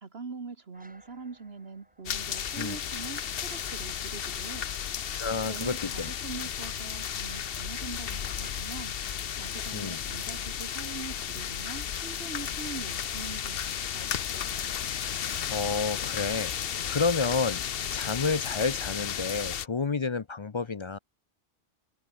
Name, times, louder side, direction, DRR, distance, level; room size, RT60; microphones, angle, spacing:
voice 1, 0.0-4.7 5.4-14.2, right 4 dB, 65° right, 2.0 m, -43 dB
sound 1, 0.7-10.4, right 1 dB, 5° right, 2.0 m, -56 dB
sound 2, 2.1-19.7, left 9 dB, 60° left, 1.0 m, -34 dB
voice 2, 5.2-6.1 9.7-10.0 14.9-17.6 17.9-21.0, left 4 dB, 35° left, 0.5 m, -30 dB
open air
omnidirectional pair, 1.1 m